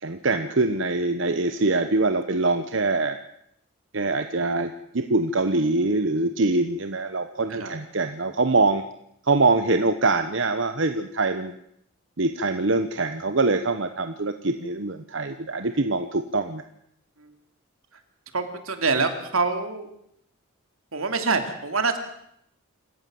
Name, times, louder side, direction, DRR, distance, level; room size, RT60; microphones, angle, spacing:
voice 1, 0.0-3.2 3.9-8.8 9.2-11.6 12.2-16.6, right 3 dB, 60° right, 8 dB, 1.0 m, -24 dB
voice 2, 18.3-19.9 20.9-22.0, right 4 dB, 80° right, 7 dB, 2.9 m, -25 dB
27.0 x 15.0 x 7.8 m, 0.75 s
head